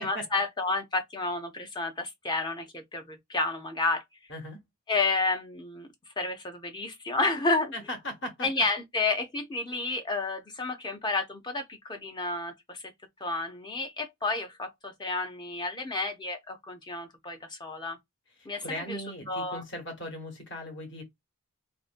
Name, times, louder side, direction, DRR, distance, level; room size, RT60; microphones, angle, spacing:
voice 1, 0.0-4.0 4.9-5.9 6.2-7.9 8.4-12.8 13.2-18.0 18.5-19.6, left 3 dB, 20° left, 0.4 m, -31 dB
voice 2, 7.7-8.5 18.6-21.0, left 1 dB, 50° left, 1.0 m, -38 dB
2.5 x 2.1 x 2.4 m
head